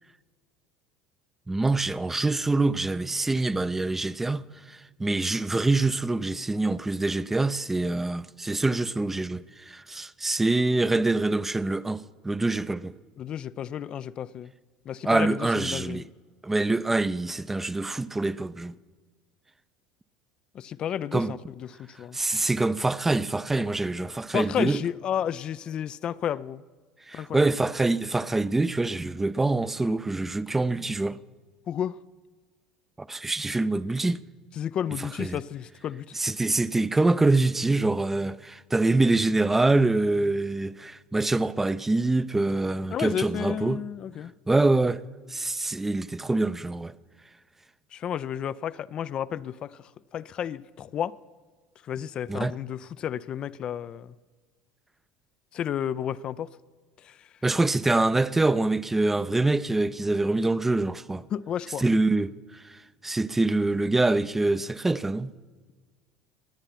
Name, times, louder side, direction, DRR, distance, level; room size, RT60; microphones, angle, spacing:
voice 1, 1.5-12.9 15.0-16.1 16.4-18.7 21.1-21.3 22.1-24.8 27.1-31.2 33.0-34.2 35.0-35.4 36.1-43.8 44.5-45.0 45.3-46.9 52.3-52.5 57.4-61.2 61.8-65.3, right 2 dB, 15° right, 0.5 m, -25 dB
voice 2, 13.2-14.5 14.9-16.0 20.5-22.2 24.3-26.6 27.1-27.5 31.7-32.0 34.6-36.1 42.9-44.3 47.9-51.1 51.8-54.1 55.5-56.5 57.0-57.3 61.3-61.8, left 9 dB, 45° left, 0.4 m, -32 dB
21.0 x 8.9 x 5.8 m
hypercardioid pair, 70°, 2 cm